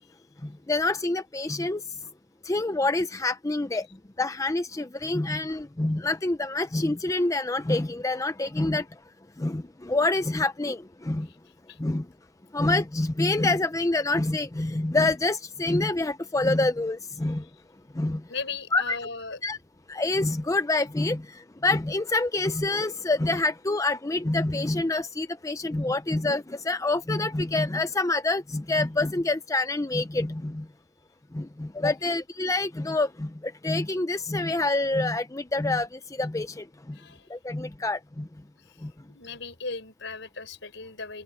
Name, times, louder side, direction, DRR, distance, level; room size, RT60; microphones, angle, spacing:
voice 1, 0.4-1.8 2.4-3.9 4.2-8.9 9.4-11.3 11.8-12.1 12.5-17.5 17.9-18.2 18.7-19.0 19.4-19.6 19.9-30.7 31.3-37.0 37.3-38.3 38.8-38.9, left 2 dB, 15° left, 0.5 m, -27 dB
voice 2, 18.3-19.4 36.9-37.3 39.1-41.2, left 4 dB, 70° left, 6.3 m, -37 dB
open air
head